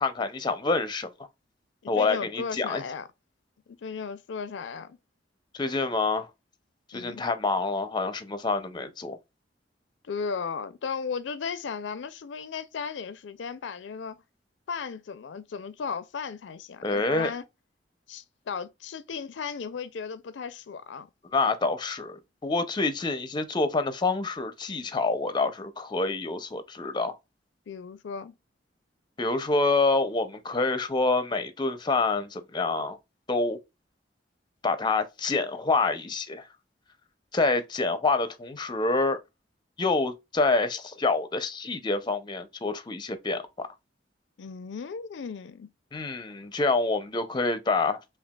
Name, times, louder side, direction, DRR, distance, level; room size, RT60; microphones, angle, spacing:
voice 1, 0.0-1.1 1.9-2.8 5.5-6.3 6.9-9.2 16.8-17.3 21.3-27.1 29.2-33.0 33.3-33.6 34.6-36.5 37.3-39.2 39.8-43.7 45.9-48.0, left 3 dB, 25° left, 0.5 m, -27 dB
voice 2, 1.8-3.1 3.7-5.0 6.9-7.2 10.0-14.2 14.7-17.4 18.1-21.1 27.7-28.3 44.4-45.7, left 5 dB, 80° left, 0.4 m, -35 dB
5.8 x 2.3 x 2.2 m
head